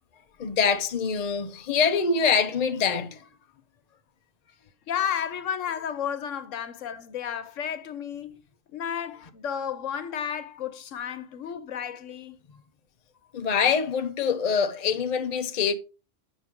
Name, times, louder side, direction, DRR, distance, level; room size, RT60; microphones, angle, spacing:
voice 1, 0.4-3.2 13.3-15.7, left 6 dB, 40° left, 0.7 m, -24 dB
voice 2, 4.9-8.4 8.7-12.4, left 8 dB, 80° left, 1.2 m, -32 dB
8.0 x 6.2 x 3.7 m
omnidirectional pair, 1.3 m